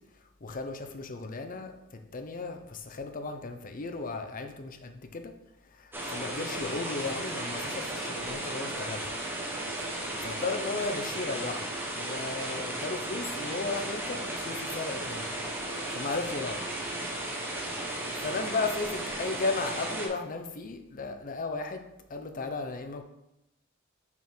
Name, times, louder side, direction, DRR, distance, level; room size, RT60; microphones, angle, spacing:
voice 1, 0.4-5.3 5.7-9.1 10.2-11.7 11.9-15.3 15.9-16.7 18.2-21.8 22.1-23.0, left 3 dB, 40° left, 6 dB, 0.6 m, -35 dB
sound 1, 5.9-20.1, right 1 dB, 10° right, 0.9 m, -35 dB
6.0 x 3.8 x 4.4 m, 0.87 s
head